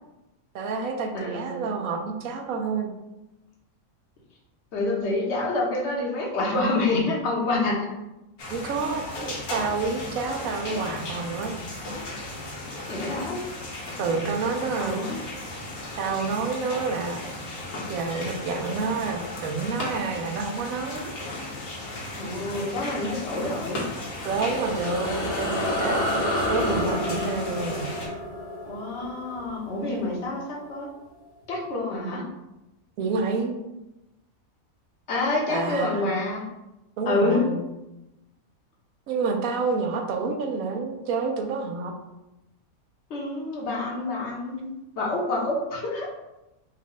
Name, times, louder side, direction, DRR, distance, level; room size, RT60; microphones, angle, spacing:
voice 1, 0.5-2.9 8.5-11.6 14.0-15.1 16.0-17.2 17.9-21.1 24.2-27.9 33.0-33.6 35.5-36.0 37.0-37.6 39.1-41.9, right 4 dB, 75° right, 3 dB, 1.1 m, -28 dB
voice 2, 1.1-1.7 4.7-7.9 12.9-13.4 14.8-15.2 22.1-23.8 28.6-30.9 31.5-32.2 35.1-36.4 37.1-37.5 43.1-46.1, left 2 dB, 55° left, -2 dB, 1.2 m, -27 dB
sound 1, 8.4-28.1, left 2 dB, 90° left, 1.5 m, -36 dB
sound 2, 23.9-30.7, left 1 dB, 70° left, 1.6 m, -30 dB
4.5 x 2.3 x 3.8 m, 0.96 s
omnidirectional pair, 1.5 m